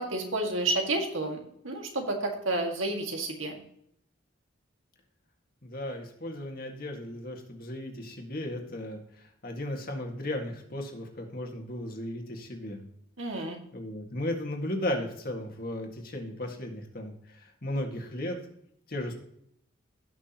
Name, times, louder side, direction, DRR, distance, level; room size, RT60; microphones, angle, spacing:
voice 1, 0.0-3.6 13.2-13.6, right 2 dB, 75° right, 2 dB, 2.0 m, -30 dB
voice 2, 5.6-12.9 13.7-18.4 18.9-19.1, left 1 dB, 45° left, 2 dB, 1.9 m, -35 dB
17.5 x 6.2 x 3.0 m, 0.70 s
head